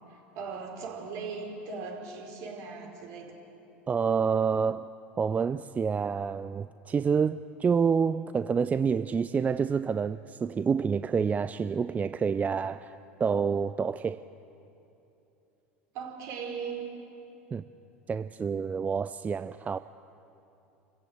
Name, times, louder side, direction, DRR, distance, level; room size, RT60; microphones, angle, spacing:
voice 1, 0.3-3.3 15.9-16.9, right 5 dB, 55° right, 4.8 m, -38 dB
voice 2, 3.9-4.9 5.2-14.2 17.5-17.6 18.1-19.8, right 6 dB, 25° right, 0.5 m, -28 dB
28.0 x 15.5 x 8.0 m
hypercardioid pair, 80°, 7 cm